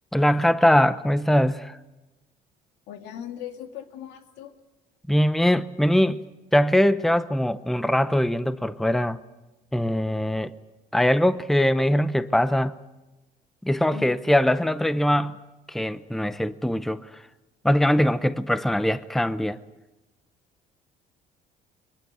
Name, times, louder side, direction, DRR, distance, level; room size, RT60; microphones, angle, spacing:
voice 1, 0.1-1.8 5.1-6.2 6.5-9.2 9.7-10.5 10.9-12.7 13.6-15.4 15.7-17.1 17.6-19.6, left 1 dB, ahead, 0.8 m, -22 dB
voice 2, 2.9-4.6 13.9-14.1, left 10 dB, 90° left, 2.4 m, -39 dB
23.0 x 20.5 x 8.1 m
cardioid pair, 110°, 17 cm